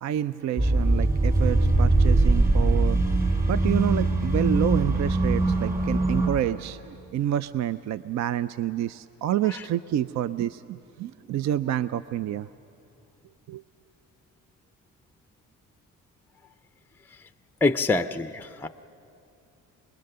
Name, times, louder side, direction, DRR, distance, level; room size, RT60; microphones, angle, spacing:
voice 1, 0.0-3.0 3.5-12.5 13.5-13.6, right 11 dB, 60° right, 15 dB, 0.5 m, -28 dB
sound 1, 0.6-6.3, right 2 dB, 25° right, 4.1 m, -22 dB
voice 2, 17.6-18.7, left 3 dB, 5° left, 11 dB, 0.5 m, -25 dB
25.5 x 20.5 x 6.8 m, 2.7 s
cardioid pair, 90°, 32 cm